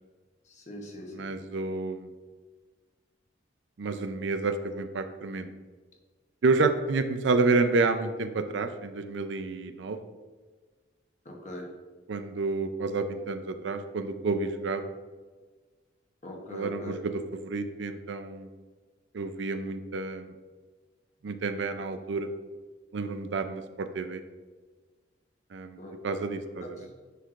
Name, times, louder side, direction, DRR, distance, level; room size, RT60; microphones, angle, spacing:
voice 1, 0.5-1.3 11.2-11.7 16.2-16.9 25.8-26.2 26.6-26.9, left 1 dB, 40° left, 1 dB, 1.0 m, -42 dB
voice 2, 1.1-2.1 3.8-5.5 6.4-10.0 12.1-14.8 16.5-18.5 19.1-20.3 21.2-22.3 22.9-24.2 25.5-26.8, right 3 dB, 75° right, 9 dB, 0.5 m, -29 dB
9.9 x 4.6 x 2.5 m, 1.4 s
head